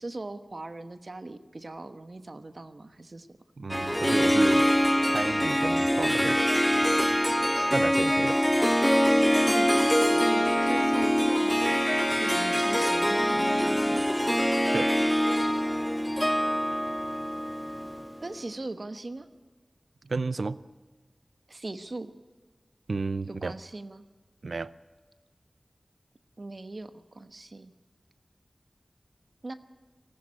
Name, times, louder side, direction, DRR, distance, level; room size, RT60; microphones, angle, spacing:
voice 1, 0.0-3.4 5.1-5.2 9.5-14.1 18.2-19.3 21.5-22.1 23.3-24.0 26.4-27.7 29.4-29.5, right 2 dB, 60° right, 10 dB, 1.1 m, -40 dB
voice 2, 3.6-4.7 5.0-6.4 7.7-8.4 14.7-14.9 20.0-20.6 22.9-23.5 24.4-24.7, right 3 dB, 80° right, 17 dB, 0.6 m, -31 dB
Harp, 3.7-18.2, equal, 5° left, 0.6 m, -24 dB
18.0 x 15.0 x 9.8 m, 1.3 s
wide cardioid pair, 40°, 0 cm